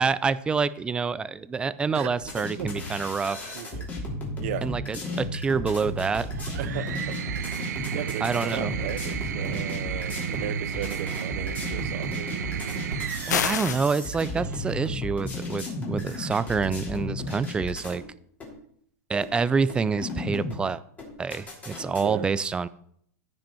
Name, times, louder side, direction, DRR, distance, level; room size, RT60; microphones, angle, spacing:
voice 1, 0.0-3.4 4.6-6.3 8.2-8.7 13.3-18.0 19.1-20.8 21.2-22.7, right 5 dB, 10° right, 0.3 m, -27 dB
sound 1, 2.2-18.0 18.4-18.5 19.2-19.3 19.7-20.6 21.0-22.0, left 1 dB, 15° left, 3.1 m, -34 dB
voice 2, 3.5-3.9 4.4-4.7 6.6-7.3 7.7-12.5 22.0-22.3, right 11 dB, 55° right, 0.8 m, -36 dB
sound 2, 6.3-14.7 15.9-16.5, right 8 dB, 85° right, 0.7 m, -33 dB
sound 3, 13.3-13.9, left 9 dB, 90° left, 0.8 m, -26 dB
15.0 x 5.3 x 4.4 m
supercardioid pair, 145°, 9 cm